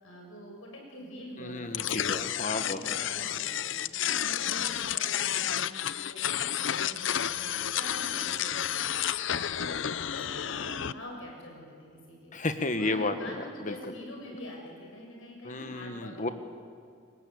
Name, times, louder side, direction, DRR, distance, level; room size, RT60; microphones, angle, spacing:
voice 1, 0.0-2.1 2.4-8.9 9.5-9.8 10.1-12.3 12.8-16.3, left 1 dB, 85° left, 0 dB, 7.4 m, -45 dB
voice 2, 1.4-2.8 12.3-13.3 13.6-13.7 15.4-16.3, left 2 dB, 40° left, 8 dB, 1.6 m, -32 dB
sound 1, 1.7-10.9, left 10 dB, 65° left, 0.6 m, -31 dB
27.0 x 22.5 x 8.6 m, 2.3 s
head